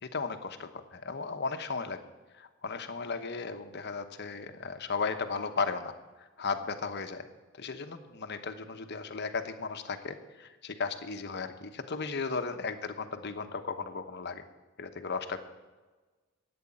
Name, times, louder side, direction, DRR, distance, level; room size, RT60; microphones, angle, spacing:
voice 1, 0.0-2.0 2.4-5.9 6.2-7.3 7.6-14.4 14.8-15.4, left 4 dB, 55° left, 8 dB, 1.0 m, -35 dB
11.0 x 8.7 x 8.7 m, 1.3 s
head